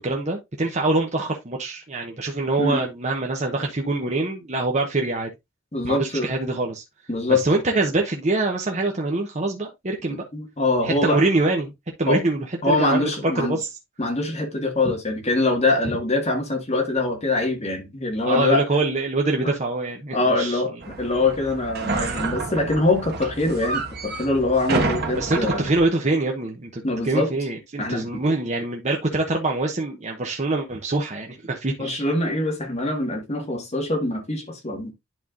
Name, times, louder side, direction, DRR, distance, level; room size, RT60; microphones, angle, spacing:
voice 1, 0.0-5.3 5.8-6.8 7.3-10.2 10.8-11.7 12.0-13.1 13.3-13.7 14.8-14.9 18.2-20.6 25.1-32.0, right 2 dB, 35° right, 1.0 m, -24 dB
voice 2, 5.7-6.3 7.1-7.4 10.1-11.2 12.1-12.2 12.6-13.6 14.0-18.6 19.4-19.5 20.1-25.6 26.8-27.3 27.8-28.1 31.8-34.9, left 2 dB, 35° left, 1.8 m, -23 dB
sound 1, 20.8-25.9, right 3 dB, 50° right, 1.5 m, -29 dB
11.0 x 4.5 x 2.5 m
head